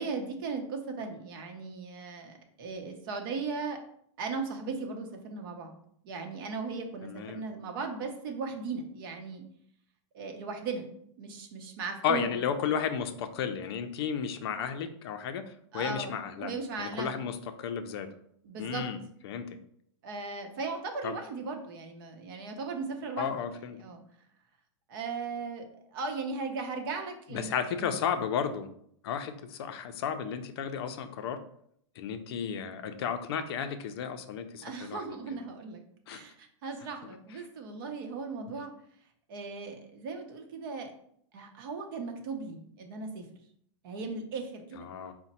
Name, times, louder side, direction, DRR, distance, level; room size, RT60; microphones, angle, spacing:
voice 1, 0.0-3.8 4.2-5.7 6.0-9.4 10.1-10.9 11.2-12.4 15.7-17.1 18.4-18.9 20.0-23.4 23.8-24.0 24.9-25.6 25.9-28.0 34.6-35.8 36.1-38.7 39.3-40.9 41.3-43.3 43.8-44.9, right 4 dB, 45° right, 4 dB, 0.8 m, -37 dB
voice 2, 7.0-7.4 12.0-16.5 16.8-18.1 18.6-19.0 19.2-19.6 21.0-21.2 23.2-23.8 27.3-28.7 29.0-31.4 32.0-35.0 36.1-36.2 44.8-45.1, left 7 dB, 55° left, 8 dB, 0.5 m, -33 dB
4.9 x 2.1 x 4.2 m, 0.69 s
supercardioid pair, 170°, 16 cm